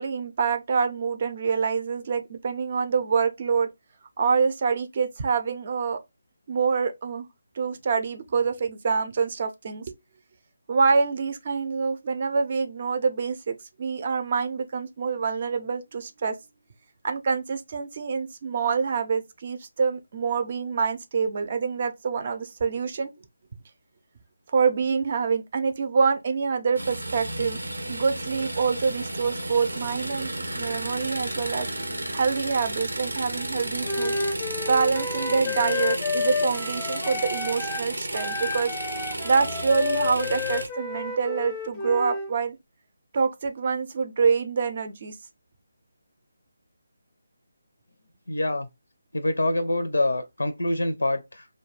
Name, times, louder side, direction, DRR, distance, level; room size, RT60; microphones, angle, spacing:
voice 1, 0.0-3.7 4.2-6.0 6.5-7.3 7.6-10.0 10.7-16.4 17.0-23.1 24.5-27.6 27.9-30.3 30.6-31.7 32.1-34.1 34.7-38.7 39.2-42.6 43.1-45.1, right 5 dB, 40° right, 0.5 m, -26 dB
sound 1, 26.7-40.7, right 1 dB, 85° right, 0.7 m, -33 dB
Wind instrument woodwind instrument, 33.8-37.9 38.1-42.3, left 4 dB, 15° left, 0.5 m, -30 dB
voice 2, 48.3-48.7 49.1-51.5, left 1 dB, 80° left, 0.4 m, -25 dB
2.2 x 2.2 x 3.1 m
figure-of-eight pair, 155°, 0 cm